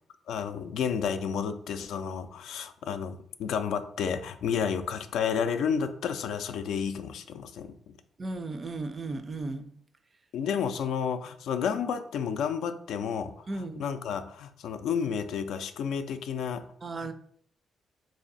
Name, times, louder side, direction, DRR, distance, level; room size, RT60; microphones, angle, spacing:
voice 1, 0.3-8.0 10.3-16.6 17.0-17.1, left 7 dB, 75° left, 0.3 m, -31 dB
voice 2, 8.2-9.7 13.5-13.9 16.8-17.1, right 2 dB, 35° right, 0.4 m, -35 dB
3.2 x 2.6 x 3.9 m
cardioid pair, 90°, 0 cm